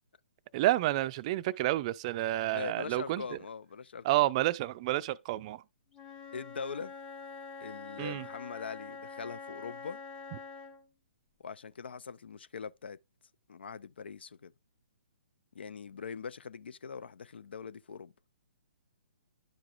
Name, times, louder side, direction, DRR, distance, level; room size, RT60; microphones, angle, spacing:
voice 1, 0.5-3.2 4.0-5.6 8.0-8.3, right 16 dB, 35° right, 0.4 m, -29 dB
voice 2, 2.5-4.2 6.3-6.9 7.6-10.0 11.4-13.0 13.5-14.5 15.5-18.1, left 6 dB, 75° left, 0.4 m, -42 dB
Wind instrument woodwind instrument, 5.9-10.9, left 4 dB, 15° left, 0.8 m, -46 dB
10.5 x 4.8 x 2.4 m
hypercardioid pair, 130°, 6 cm